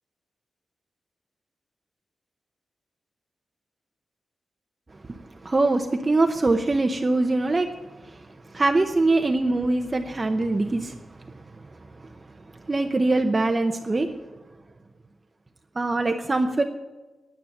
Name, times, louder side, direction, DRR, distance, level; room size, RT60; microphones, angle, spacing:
voice 1, 5.1-7.7 8.0-8.3 8.5-11.0 12.0-12.1 12.7-14.1 15.8-16.6, right 2 dB, 25° right, 4 dB, 0.8 m, -23 dB
10.0 x 9.8 x 8.9 m, 1.2 s
wide cardioid pair, 140°, 0 cm